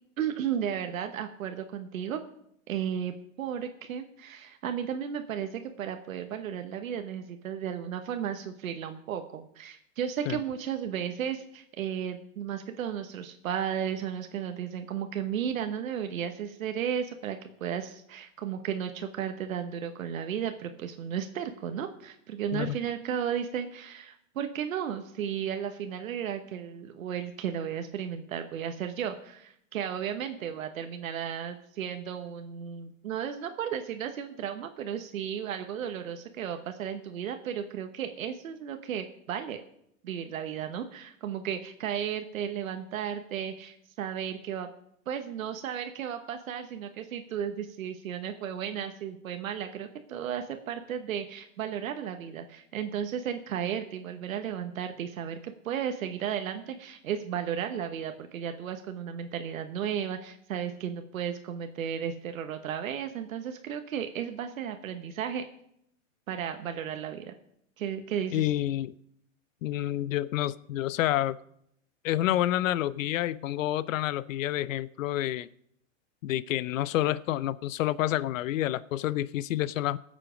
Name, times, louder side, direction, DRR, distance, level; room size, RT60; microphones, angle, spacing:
voice 1, 0.2-2.2 2.7-39.6 40.0-44.7 45.1-65.4 66.3-67.3 67.8-68.5, right 9 dB, 85° right, 7 dB, 1.2 m, -34 dB
voice 2, 68.3-68.9 69.6-71.4 72.0-75.5 76.2-80.0, left 13 dB, 75° left, 19 dB, 0.6 m, -28 dB
19.0 x 7.5 x 5.0 m, 0.74 s
supercardioid pair, 150°, 40 cm